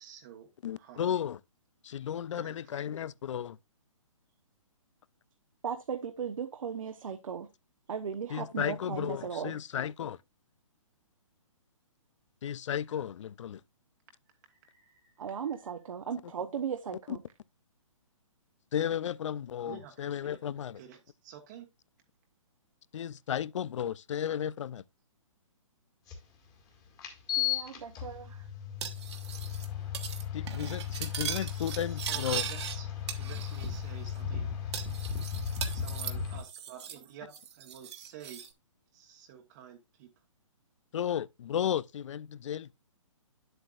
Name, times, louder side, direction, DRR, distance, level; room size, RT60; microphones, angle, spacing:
voice 1, 0.0-0.5 0.8-1.0 2.3-2.5 14.6-15.6 19.6-20.4 20.8-21.0 21.2-21.7 31.1-32.9 33.2-34.5 35.7-38.5 38.9-40.1, right 9 dB, 35° right, 1.1 m, -50 dB
voice 2, 0.6-1.4 1.8-3.6 8.3-10.2 12.4-13.6 17.1-17.2 18.7-20.8 22.9-24.8 30.3-32.5 40.9-42.7, left 9 dB, 65° left, 0.4 m, -34 dB
voice 3, 5.6-7.5 7.9-9.5 15.2-17.2 27.4-28.4, right 7 dB, 75° right, 0.9 m, -37 dB
sound 1, 26.1-26.2 27.0-36.4, left 9 dB, 20° left, 1.9 m, -36 dB
Cutlery silverware, 28.8-29.7 29.9-30.2 30.5-32.8 33.1-33.8 34.1-34.2 34.7-37.1 37.3-38.5, right 8 dB, 55° right, 1.4 m, -39 dB
9.2 x 7.8 x 2.4 m
hypercardioid pair, 150°, 17 cm